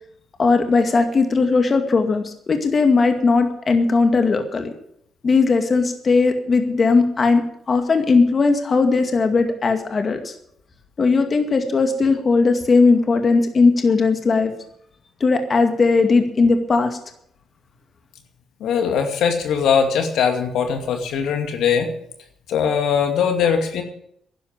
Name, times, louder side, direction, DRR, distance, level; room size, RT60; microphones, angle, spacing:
voice 1, 0.4-4.7 5.2-7.4 7.7-10.3 11.0-14.5 15.2-17.0, left 4 dB, 40° left, 6 dB, 2.1 m, -18 dB
voice 2, 18.6-21.9 22.5-23.8, left 7 dB, 80° left, 5 dB, 2.5 m, -20 dB
11.0 x 11.0 x 8.9 m, 0.70 s
cardioid pair, 90°, 0 cm